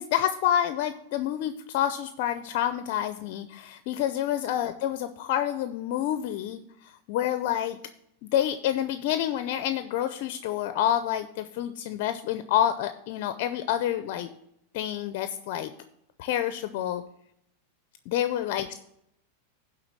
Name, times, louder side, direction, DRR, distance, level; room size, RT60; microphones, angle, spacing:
voice 1, 0.0-7.8 8.2-14.3 14.7-15.7 16.2-17.0 18.1-18.8, left 11 dB, 60° left, 10 dB, 0.6 m, -28 dB
11.0 x 3.9 x 7.3 m, 0.76 s
hypercardioid pair, 120°, 0 cm